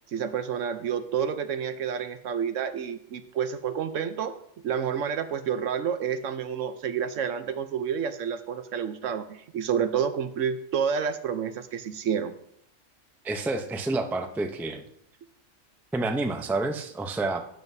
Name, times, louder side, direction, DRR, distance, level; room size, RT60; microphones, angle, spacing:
voice 1, 0.1-4.4 4.6-12.3, right 7 dB, 75° right, 10 dB, 1.1 m, -29 dB
voice 2, 13.2-14.8 15.9-17.4, right 2 dB, ahead, 5 dB, 0.4 m, -29 dB
12.5 x 9.2 x 2.7 m, 0.71 s
omnidirectional pair, 1.3 m